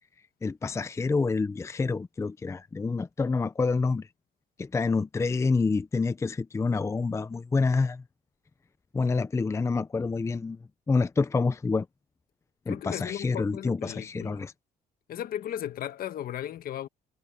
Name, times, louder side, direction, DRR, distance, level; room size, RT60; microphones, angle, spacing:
voice 1, 0.4-4.1 4.6-8.0 8.9-10.6 10.9-11.9 12.7-14.5, left 4 dB, 15° left, 0.5 m, -27 dB
voice 2, 12.7-14.4 15.1-16.9, left 11 dB, 60° left, 1.4 m, -36 dB
cardioid pair, 110°, 17 cm